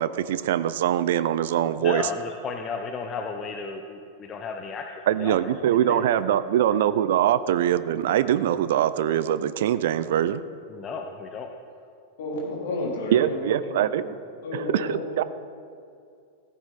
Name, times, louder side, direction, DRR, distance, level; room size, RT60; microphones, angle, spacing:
voice 1, 0.0-2.1 5.1-10.4 13.1-14.0 14.5-15.2, right 11 dB, 55° right, 15 dB, 0.4 m, -23 dB
voice 2, 1.8-5.5 5.9-6.1 6.7-6.8 10.7-11.5, left 5 dB, 25° left, 4 dB, 0.8 m, -34 dB
voice 3, 12.2-14.1 14.4-15.0, left 2 dB, 60° left, -3 dB, 3.2 m, -31 dB
14.5 x 9.5 x 4.0 m, 2.4 s
figure-of-eight pair, 90°, 0 cm